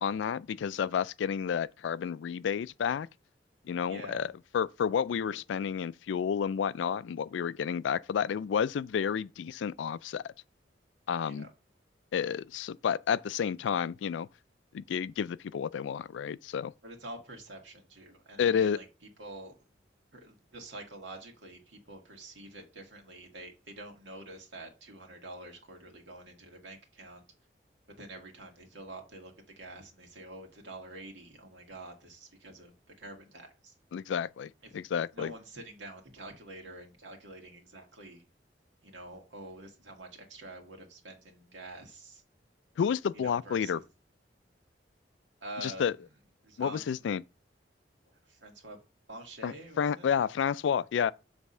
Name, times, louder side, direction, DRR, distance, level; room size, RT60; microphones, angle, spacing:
voice 1, 0.0-3.1 3.7-4.3 4.5-10.3 11.1-11.5 12.1-14.3 14.7-16.7 18.4-18.8 33.9-35.3 42.8-43.8 45.6-45.9 46.6-47.2 49.4-51.1, left 7 dB, 80° left, 0.3 m, -30 dB
voice 2, 3.9-4.3 5.3-5.4 11.2-11.5 16.8-18.9 19.2-19.5 20.1-27.2 27.9-32.7 33.0-33.8 34.6-34.8 35.1-38.3 38.8-42.2 43.1-43.9 45.4-46.0 46.4-47.1 48.1-48.8 49.1-50.1, right 1 dB, 90° right, 1.9 m, -47 dB
7.3 x 3.5 x 5.4 m
head